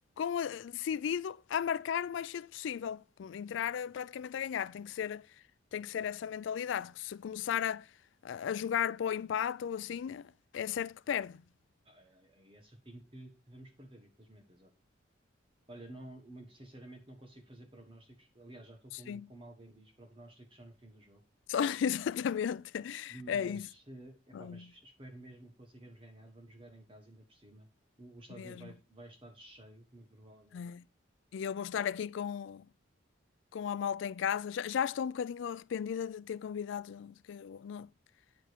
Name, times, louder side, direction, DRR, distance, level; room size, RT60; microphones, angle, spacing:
voice 1, 0.2-5.2 5.7-7.9 8.2-11.4 19.1-19.2 21.5-23.6 24.3-24.6 28.4-28.7 30.5-30.8 31.3-32.6 33.5-37.9, left 8 dB, 65° left, 0.3 m, -35 dB
voice 2, 11.8-14.7 15.7-21.2 23.1-27.7 28.0-30.6, right 1 dB, 25° right, 1.3 m, -52 dB
8.7 x 5.1 x 4.5 m
head